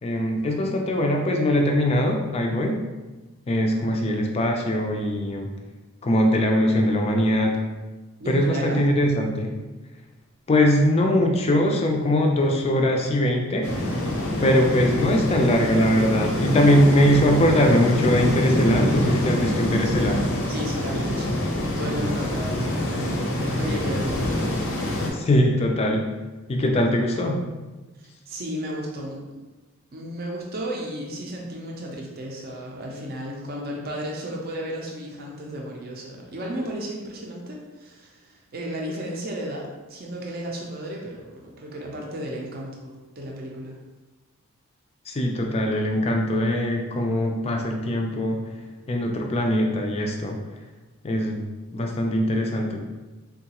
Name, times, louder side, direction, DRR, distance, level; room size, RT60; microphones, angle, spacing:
voice 1, 0.0-2.8 3.5-5.5 6.0-7.6 8.3-9.5 10.5-14.0 14.4-20.2 25.1-26.1 26.5-27.4 45.1-48.4 48.9-50.4 51.0-51.4 51.7-52.8, left 1 dB, 30° left, 2 dB, 0.3 m, -21 dB
voice 2, 8.2-8.9 20.5-23.2 23.6-24.3 24.7-24.8 28.0-29.2 29.9-43.8, equal, 45° right, -1 dB, 0.5 m, -34 dB
sound 1, 13.6-25.1, left 1 dB, 80° left, 0.6 m, -26 dB
3.7 x 2.3 x 2.8 m, 1.2 s
head